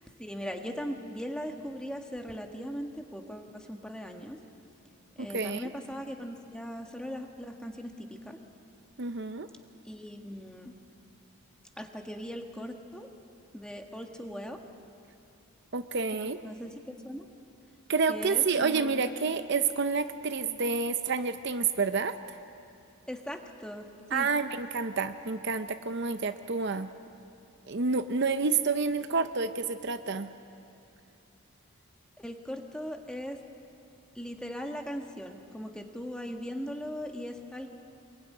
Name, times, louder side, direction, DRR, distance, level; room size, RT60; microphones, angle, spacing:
voice 1, 0.2-4.4 5.2-8.4 9.8-10.7 11.8-13.1 13.5-14.6 16.1-17.3 18.1-19.0 23.1-24.3 32.2-33.4 34.1-37.7, equal, 5° left, 3 dB, 1.5 m, -39 dB
voice 2, 5.2-5.7 9.0-9.5 15.7-16.4 17.9-22.4 24.1-26.9 27.7-30.3, right 4 dB, 50° right, 9 dB, 0.7 m, -29 dB
25.5 x 22.0 x 9.6 m, 2.7 s
head